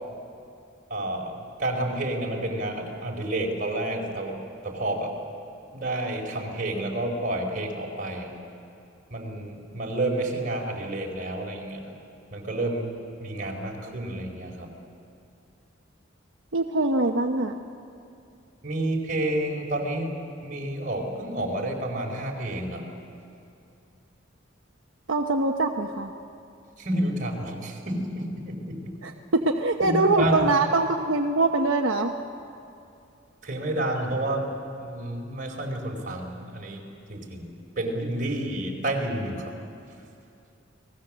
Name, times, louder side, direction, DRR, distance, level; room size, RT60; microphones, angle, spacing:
voice 1, 0.9-5.1 5.7-8.3 9.1-11.8 12.3-12.9 13.2-14.7 18.6-20.1 20.4-22.9 26.8-28.9 29.8-30.5 33.4-34.5 34.8-36.8 37.1-37.5 37.8-39.5, right 1 dB, 45° right, 0 dB, 4.5 m, -30 dB
voice 2, 16.5-17.5 25.1-26.1 29.0-32.2, right 2 dB, 90° right, 3 dB, 1.0 m, -23 dB
29.5 x 19.5 x 7.5 m, 2.6 s
head